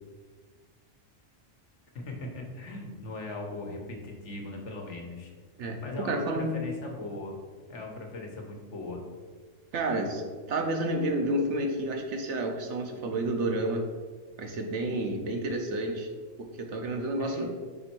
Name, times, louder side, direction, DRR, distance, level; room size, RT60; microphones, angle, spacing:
voice 1, 2.0-5.3 5.8-7.4 7.7-9.0 17.2-17.5, left 2 dB, 65° left, 1 dB, 1.3 m, -39 dB
voice 2, 6.0-6.5 9.7-13.8 14.4-16.1 16.7-17.5, right 1 dB, 65° right, 3 dB, 1.0 m, -30 dB
5.2 x 4.2 x 4.4 m, 1.5 s
omnidirectional pair, 1.4 m